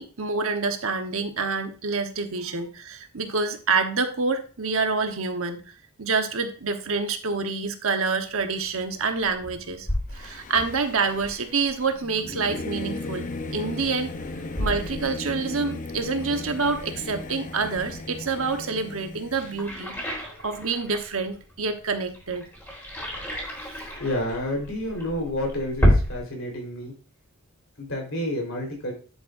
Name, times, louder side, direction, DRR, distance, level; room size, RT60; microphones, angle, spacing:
voice 1, 0.0-5.7 6.0-9.9 10.1-14.1 14.6-19.9 20.4-22.5, right 4 dB, 65° right, 6 dB, 1.2 m, -27 dB
sound 1, 8.3-26.2, equal, 10° left, 3.8 m, -32 dB
Singing / Musical instrument, 10.1-19.7, left 2 dB, 35° left, 0.8 m, -37 dB
voice 2, 24.0-26.9 27.8-28.9, left 1 dB, 65° left, 1 dB, 4.0 m, -29 dB
10.0 x 8.5 x 2.6 m, 0.37 s
head